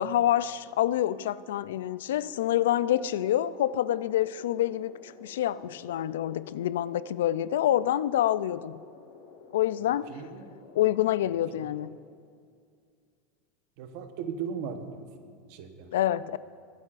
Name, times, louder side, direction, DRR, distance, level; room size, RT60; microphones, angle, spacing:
voice 1, 0.0-8.8 9.5-10.1 10.8-11.9 15.9-16.4, left 12 dB, 90° left, 17 dB, 0.3 m, -27 dB
sound 1, 2.2-11.9, left 5 dB, 70° left, 1.5 m, -51 dB
voice 2, 10.1-10.5 11.5-11.7 13.8-15.9, right 6 dB, 60° right, 7 dB, 0.9 m, -38 dB
23.5 x 8.2 x 2.5 m, 2.2 s
supercardioid pair, 140°, 0 cm